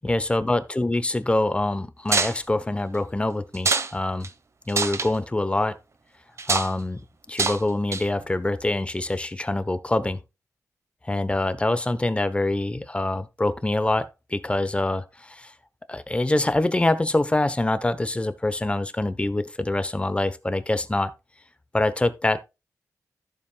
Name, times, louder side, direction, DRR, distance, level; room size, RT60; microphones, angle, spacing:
voice 1, 0.0-4.3 4.7-5.8 6.5-7.0 7.3-10.2 11.0-15.5 15.9-21.1 21.7-22.4, left 2 dB, 20° left, 1.0 m, -25 dB
sound 1, 2.1-2.4 3.5-3.9 4.2-4.3 4.7-5.1 6.4-6.7 7.4-7.6 7.9-8.2, right 4 dB, 50° right, 1.2 m, -24 dB
14.5 x 7.2 x 2.4 m
wide cardioid pair, 100°, 6 cm